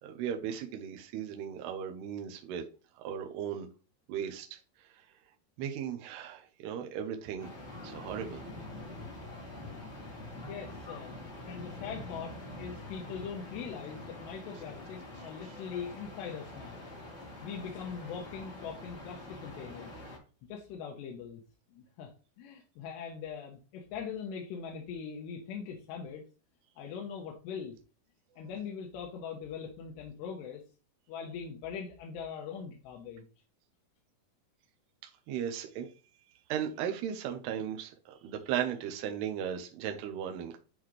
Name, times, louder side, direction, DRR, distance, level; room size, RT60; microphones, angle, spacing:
voice 1, 0.0-2.6 3.0-3.7 4.1-4.5 5.6-7.5 7.8-8.4 35.3-35.9 36.5-37.9 38.2-40.6, right 9 dB, 80° right, 4 dB, 2.9 m, -36 dB
sound 1, 7.4-20.2, left 1 dB, 25° left, 2.0 m, -45 dB
voice 2, 10.5-16.8 17.4-19.9 20.5-21.4 21.7-22.1 22.4-26.2 26.8-27.8 28.4-30.6 31.1-33.3, left 6 dB, 90° left, 0 dB, 3.1 m, -41 dB
10.5 x 3.9 x 3.2 m, 0.35 s
omnidirectional pair, 4.8 m